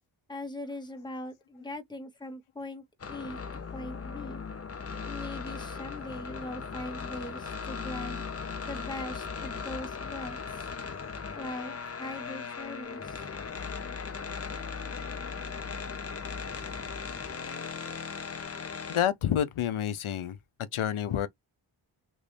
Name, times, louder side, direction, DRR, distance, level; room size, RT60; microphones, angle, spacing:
voice 1, 0.3-3.4 3.7-4.4 5.1-8.2 8.6-10.7 11.3-13.2, left 1 dB, 10° left, 1.0 m, -41 dB
sound 1, 3.0-19.0, left 5 dB, 30° left, 0.6 m, -38 dB
voice 2, 18.9-20.4 20.7-21.3, left 10 dB, 80° left, 0.7 m, -28 dB
3.1 x 2.6 x 3.3 m
cardioid pair, 65°, 49 cm